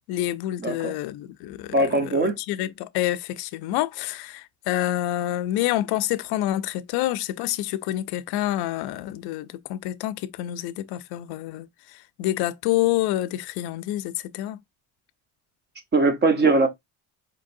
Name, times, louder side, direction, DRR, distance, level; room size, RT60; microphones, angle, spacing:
voice 1, 0.1-11.7 11.9-14.6, left 14 dB, 80° left, 0.5 m, -28 dB
voice 2, 0.6-0.9 1.7-2.4 15.9-16.7, right 3 dB, 25° right, 0.9 m, -20 dB
4.6 x 3.6 x 2.6 m
cardioid pair, 145°, 38 cm